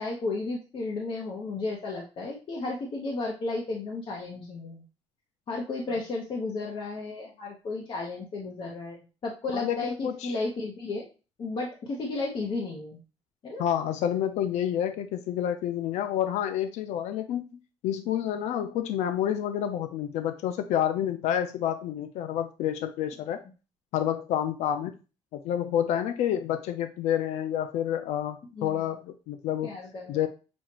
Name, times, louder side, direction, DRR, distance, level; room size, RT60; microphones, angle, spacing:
voice 1, 0.0-4.8 5.5-9.0 9.2-11.1 11.4-13.0 13.4-13.6 28.5-28.8 29.6-30.2, left 3 dB, 50° left, -2 dB, 1.0 m, -33 dB
voice 2, 9.5-10.3 13.6-17.4 17.8-23.4 23.9-25.0 25.3-29.7 30.1-30.3, left 10 dB, 90° left, 8 dB, 0.5 m, -29 dB
6.2 x 2.4 x 2.9 m, 0.33 s
cardioid pair, 105°, 11 cm